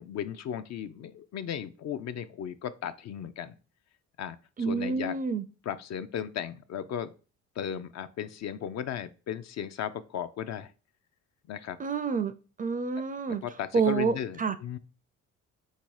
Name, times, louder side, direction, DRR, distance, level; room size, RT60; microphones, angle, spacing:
voice 1, 0.0-3.5 4.2-5.1 5.7-7.1 7.6-10.7 11.5-11.8 13.0-14.8, left 9 dB, 60° left, 0.5 m, -36 dB
voice 2, 4.6-5.4 11.8-12.3 12.6-13.4 13.7-14.5, right 5 dB, 30° right, 0.4 m, -28 dB
3.6 x 2.8 x 4.7 m
cardioid pair, 90°, 30 cm